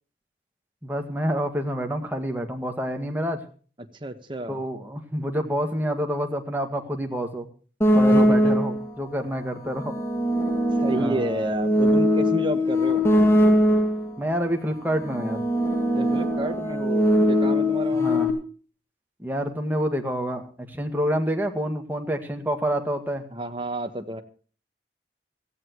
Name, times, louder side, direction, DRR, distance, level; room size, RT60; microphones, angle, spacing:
voice 1, 0.8-3.4 4.5-7.5 7.9-9.9 10.9-11.3 14.2-15.5 17.9-18.3 19.2-23.2, equal, 10° right, 4 dB, 1.9 m, -28 dB
voice 2, 4.0-4.6 8.1-8.5 10.8-13.1 15.9-18.2 23.3-24.2, right 1 dB, 25° right, 6 dB, 1.4 m, -31 dB
sound 1, 7.8-8.9 9.7-14.1 14.9-18.3, equal, 15° left, 2.5 m, -21 dB
17.5 x 15.0 x 3.1 m, 0.40 s
head